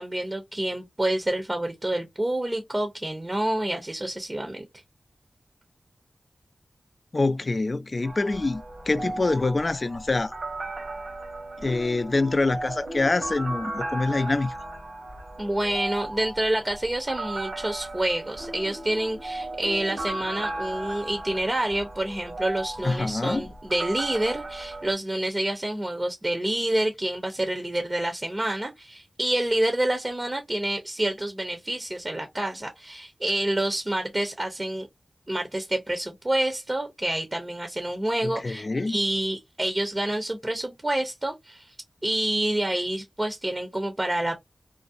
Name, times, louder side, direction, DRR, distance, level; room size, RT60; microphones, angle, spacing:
voice 1, 0.0-4.6 15.4-34.9 35.3-41.7 42.0-44.4, right 1 dB, 25° right, 0.6 m, -28 dB
voice 2, 7.1-10.4 11.6-14.5 22.8-23.5 38.2-39.0, left 3 dB, 50° left, 0.3 m, -25 dB
sound 1, 8.0-24.9, right 2 dB, 75° right, 1.2 m, -36 dB
2.6 x 2.0 x 2.4 m
cardioid pair, 55°, 0 cm